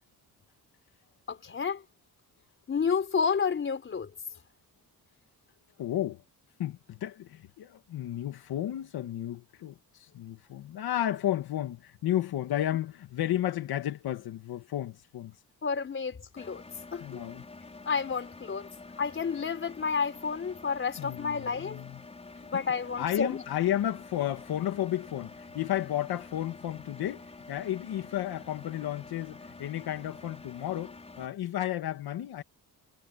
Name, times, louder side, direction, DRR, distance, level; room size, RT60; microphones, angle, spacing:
voice 1, 1.3-1.8 2.7-4.1 15.6-16.6 16.9-17.2 17.8-18.7 19.0-21.8 22.4-23.4, left 6 dB, 35° left, 4.4 m, -30 dB
voice 2, 5.8-6.2 6.6-15.3 17.0-17.4 21.0-22.0 23.0-27.2 27.5-32.4, left 12 dB, 80° left, 1.9 m, -32 dB
Engine, 16.4-31.3, left 3 dB, 15° left, 5.2 m, -48 dB
cardioid pair, 160°, 37 cm